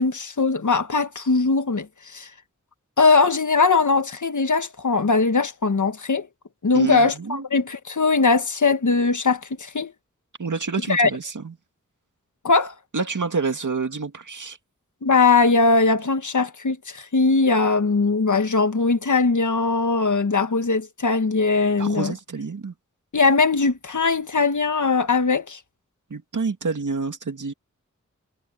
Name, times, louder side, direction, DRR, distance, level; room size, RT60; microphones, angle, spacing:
voice 1, 0.0-1.9 2.1-2.3 3.0-6.3 6.6-9.9 10.9-11.1 12.4-12.7 15.0-22.1 23.1-25.6, left 4 dB, 80° left, 1.6 m, -20 dB
voice 2, 6.7-7.4 10.4-11.5 12.9-14.6 21.8-22.7 26.1-27.5, right 4 dB, 85° right, 2.1 m, -28 dB
wide cardioid pair, 70°, 30 cm